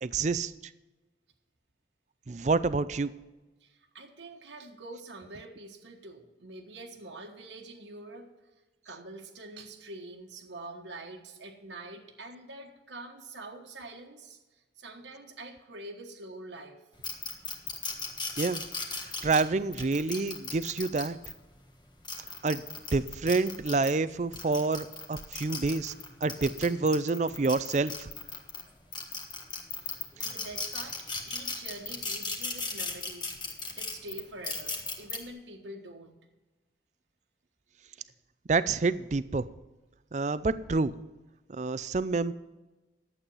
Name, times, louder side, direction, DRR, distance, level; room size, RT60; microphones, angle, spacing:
voice 1, 0.0-0.5 2.3-3.2 18.4-18.6 19.2-21.2 22.4-22.6 22.9-25.9 26.2-28.1 38.5-39.5 40.1-41.0 41.5-42.3, right 3 dB, 40° right, 16 dB, 0.4 m, -28 dB
voice 2, 3.6-8.3 8.8-16.8 29.8-36.2, right 2 dB, 85° right, 1 dB, 1.4 m, -45 dB
sound 1, 17.0-21.3 21.9-23.9 24.3-28.6 28.9-35.2, left 4 dB, 25° left, 1.4 m, -36 dB
11.5 x 8.3 x 5.6 m, 1.1 s
head